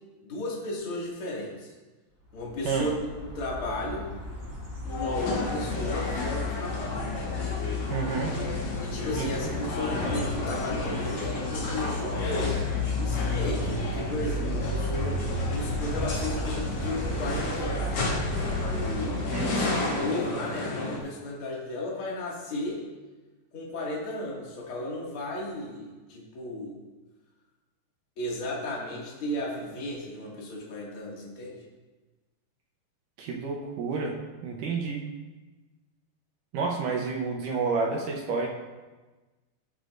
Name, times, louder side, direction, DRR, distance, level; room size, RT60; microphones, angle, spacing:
voice 1, 0.2-1.7 2.3-4.1 4.8-7.0 8.8-12.6 13.0-15.2 15.5-18.1 18.7-19.2 19.5-22.8 23.5-26.8 28.2-31.6, left 1 dB, 40° left, -4 dB, 2.2 m, -34 dB
sound 1, 2.4-20.0, left 2 dB, 10° right, 2.0 m, -33 dB
sound 2, 4.9-21.0, left 2 dB, 55° left, 1.7 m, -32 dB
voice 2, 7.9-8.3 9.2-9.3 19.3-19.6 33.2-35.1 36.5-38.5, right 4 dB, 75° right, -1 dB, 1.9 m, -30 dB
15.0 x 8.0 x 2.6 m, 1.2 s
omnidirectional pair, 4.9 m